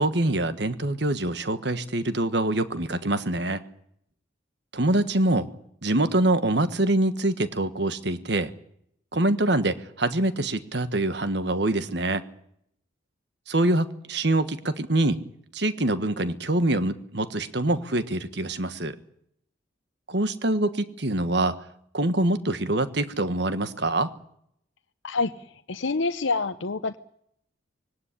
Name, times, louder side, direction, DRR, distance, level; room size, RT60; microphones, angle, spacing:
voice 1, 0.0-3.6 4.7-5.5 5.8-8.5 9.1-12.2 13.5-15.2 15.5-18.9 20.1-21.6 21.9-24.1, right 1 dB, 60° right, 11 dB, 1.4 m, -25 dB
voice 2, 25.0-27.0, left 3 dB, 75° left, 7 dB, 0.8 m, -27 dB
20.5 x 18.0 x 10.0 m, 0.72 s
head